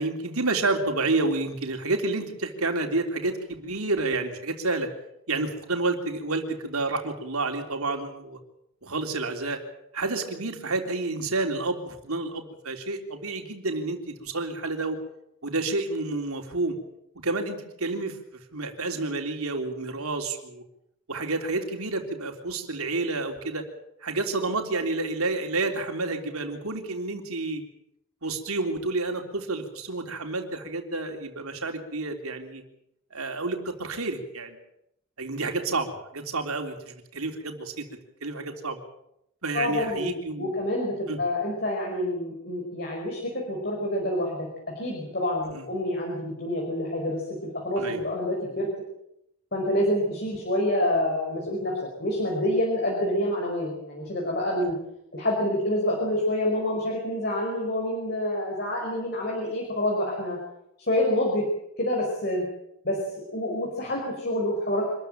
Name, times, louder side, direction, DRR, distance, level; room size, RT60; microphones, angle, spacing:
voice 1, 0.0-4.9 5.3-8.4 8.8-9.6 9.9-15.0 15.4-16.8 17.2-20.6 21.1-23.7 24.0-27.6 28.2-32.6 33.1-34.6 35.2-37.8 38.2-38.8 39.4-40.5 41.1-41.2 45.5-45.6 47.8-48.0, right 3 dB, 85° right, 4 dB, 3.6 m, -29 dB
voice 2, 39.5-44.5 44.7-48.7 49.5-54.7 55.1-60.4 60.9-61.5 61.8-62.4 62.8-64.9, left 1 dB, 45° left, -1 dB, 5.1 m, -27 dB
26.0 x 14.0 x 9.1 m, 0.80 s
head